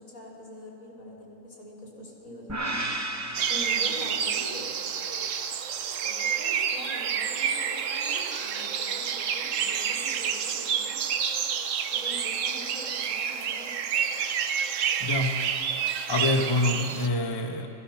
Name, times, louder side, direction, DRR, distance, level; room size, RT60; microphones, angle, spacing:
voice 1, 0.0-2.8 3.5-4.7 6.0-11.1 11.9-13.7, equal, 55° left, -3 dB, 3.8 m, -43 dB
sound 1, 2.5-4.7, right 2 dB, 25° right, 0.3 m, -34 dB
sound 2, 3.3-17.1, right 7 dB, 65° right, 1.0 m, -29 dB
voice 2, 15.0-15.4 16.1-17.7, left 2 dB, 25° left, 3 dB, 0.5 m, -26 dB
16.5 x 14.5 x 5.8 m, 2.9 s
omnidirectional pair, 1.6 m